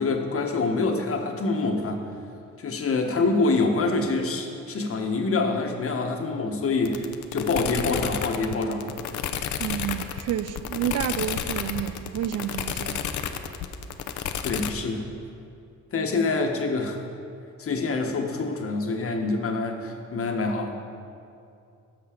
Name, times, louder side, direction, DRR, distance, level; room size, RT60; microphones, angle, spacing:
voice 1, 0.0-2.0 2.6-8.9 14.4-15.1 15.9-17.0 17.6-20.8, left 3 dB, 50° left, 1.3 m, -26 dB
sound 1, 6.9-14.7, left 9 dB, 70° left, 0.7 m, -30 dB
voice 2, 9.6-13.0, right 11 dB, 60° right, 0.4 m, -30 dB
13.5 x 5.8 x 5.1 m
cardioid pair, 90°, 30 cm